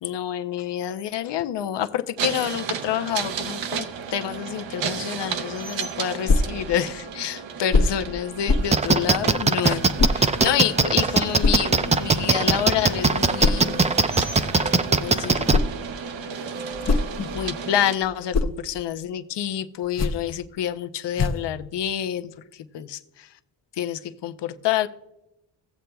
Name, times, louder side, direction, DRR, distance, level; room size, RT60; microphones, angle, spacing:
voice 1, 0.0-13.8 14.6-15.6 16.9-17.0 17.3-23.0 23.8-24.9, left 10 dB, 65° left, 10 dB, 0.7 m, -28 dB
sound 1, 2.2-18.0, right 6 dB, 75° right, 0.9 m, -33 dB
sound 2, 6.3-6.6 7.7-8.0 8.5-8.8 10.0-10.2 11.4-11.7 13.4-13.7 15.2-15.8 16.6-17.6 18.0-18.6 19.8-20.3 21.1-21.5, left 3 dB, 35° left, 0.8 m, -23 dB
sound 3, 8.7-15.6, right 4 dB, 15° right, 0.4 m, -19 dB
17.0 x 7.6 x 2.3 m, 0.90 s
cardioid pair, 95°, 45 cm